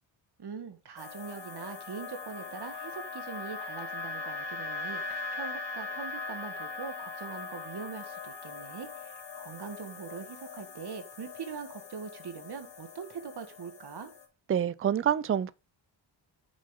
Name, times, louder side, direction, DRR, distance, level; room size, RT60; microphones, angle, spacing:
voice 1, 0.4-14.1, right 6 dB, 55° right, 1.7 m, -42 dB
sound 1, 1.0-14.3, left 4 dB, 60° left, 2.0 m, -40 dB
voice 2, 14.5-15.5, right 9 dB, 30° right, 0.4 m, -27 dB
9.0 x 6.6 x 3.8 m
wide cardioid pair, 135°, 48 cm